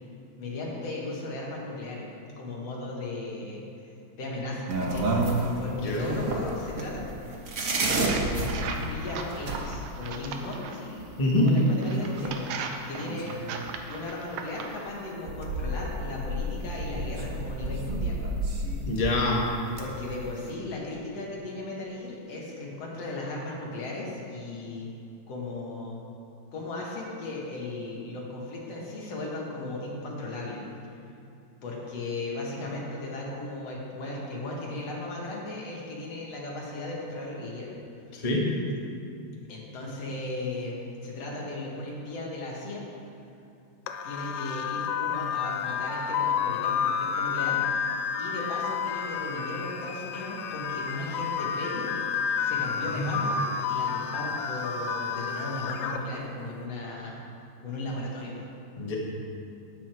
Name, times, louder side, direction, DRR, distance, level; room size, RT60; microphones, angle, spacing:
voice 1, 0.4-2.1 2.4-3.6 4.1-5.1 5.6-7.1 7.8-13.3 13.9-18.2 19.8-24.9 25.3-26.0 26.5-30.6 31.6-37.7 39.5-42.9 44.0-47.8 48.2-51.9 52.4-57.2 57.6-58.4, left 2 dB, 60° left, -3 dB, 2.8 m, -36 dB
sound 1, 4.7-9.6 11.0-11.1 11.4-11.5 11.8-12.7 13.0-13.7 14.8-14.9 15.3-19.4 19.7-20.3, right 2 dB, 70° right, 0.7 m, -31 dB
sound 2, 7.7-10.8 11.5-14.8, right 5 dB, 85° right, 2.3 m, -37 dB
voice 2, 11.2-11.5 18.8-19.4 38.1-38.4 52.9-53.1 58.8-58.9, left 1 dB, 25° left, -3 dB, 0.8 m, -25 dB
sound 3, 43.9-56.0, left 6 dB, 75° left, 1.8 m, -30 dB
12.5 x 9.5 x 4.6 m, 2.6 s
omnidirectional pair, 3.4 m